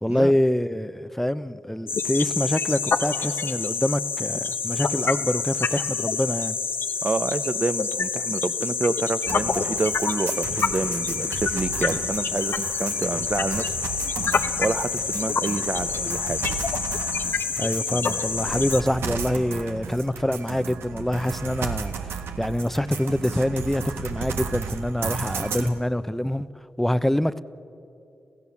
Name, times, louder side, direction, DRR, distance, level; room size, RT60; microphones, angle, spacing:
voice 1, 0.0-6.6 17.6-26.5 26.8-27.4, left 1 dB, 5° left, 0.7 m, -25 dB
tropical savanna in brazil, 1.9-18.8, left 5 dB, 65° left, 1.0 m, -27 dB
voice 2, 7.0-13.8 14.6-16.4, right 3 dB, 35° right, 0.7 m, -28 dB
sound 1, 9.3-25.7, right 5 dB, 90° right, 1.3 m, -34 dB
28.0 x 15.5 x 7.2 m
cardioid pair, 60°, 4 cm